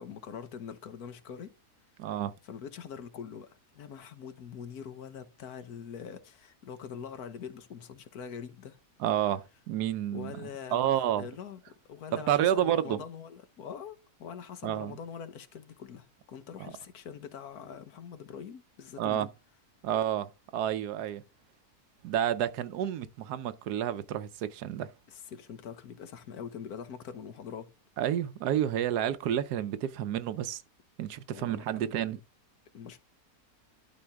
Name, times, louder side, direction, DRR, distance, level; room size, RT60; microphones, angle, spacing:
voice 1, 0.0-1.5 2.4-8.8 10.1-11.6 11.9-19.3 25.1-27.7 31.3-31.9 32.7-33.0, left 7 dB, 70° left, 1.5 m, -43 dB
voice 2, 2.0-2.3 9.0-11.3 12.1-13.0 14.6-15.0 16.6-16.7 19.0-19.3 19.8-21.2 22.0-24.9 28.0-30.6 31.0-32.2, right 10 dB, 85° right, 1.3 m, -30 dB
12.0 x 4.3 x 3.5 m
omnidirectional pair, 1.7 m